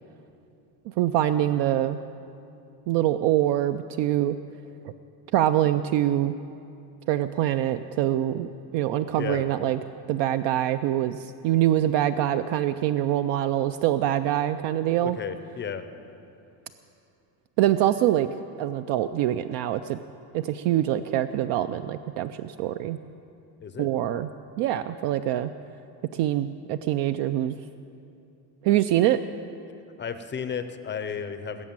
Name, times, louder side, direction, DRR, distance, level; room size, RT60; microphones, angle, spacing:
voice 1, 1.0-2.0 2.9-4.4 5.3-6.4 7.1-9.8 10.1-15.2 17.6-18.3 18.6-20.0 20.3-23.0 23.8-24.3 24.6-25.5 26.1-27.6 28.6-29.2, right 12 dB, 65° right, 10 dB, 0.5 m, -24 dB
voice 2, 9.2-9.5 15.0-15.9 23.6-23.9 30.0-31.6, left 7 dB, 25° left, 10 dB, 0.5 m, -33 dB
20.0 x 7.4 x 8.8 m, 2.7 s
cardioid pair, 165°, 48 cm